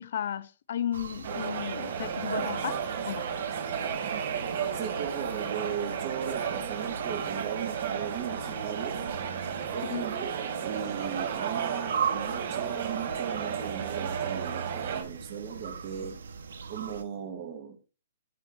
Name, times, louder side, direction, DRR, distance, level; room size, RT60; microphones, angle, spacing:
voice 1, 0.0-2.8 3.1-3.2 9.8-10.1, left 10 dB, 60° left, 0.7 m, -34 dB
sound 1, 0.9-17.0, right 6 dB, 90° right, 1.2 m, -40 dB
sound 2, 1.2-15.0, right 7 dB, 50° right, 3.0 m, -33 dB
voice 2, 4.7-9.1 9.7-16.2 16.7-17.8, right 8 dB, 35° right, 2.2 m, -37 dB
17.5 x 7.9 x 2.7 m
hypercardioid pair, 170°, 0 cm